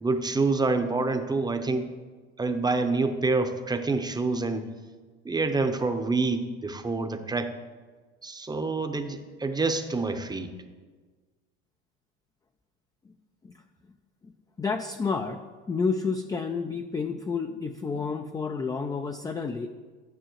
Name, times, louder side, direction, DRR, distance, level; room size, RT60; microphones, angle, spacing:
voice 1, 0.0-1.9 2.4-4.7 5.2-7.5 8.2-10.5, right 3 dB, 10° right, 7 dB, 0.7 m, -27 dB
voice 2, 14.6-15.4 15.7-19.7, left 5 dB, 10° left, 6 dB, 0.3 m, -30 dB
12.0 x 6.1 x 3.1 m, 1.4 s
hypercardioid pair, 85°, 33 cm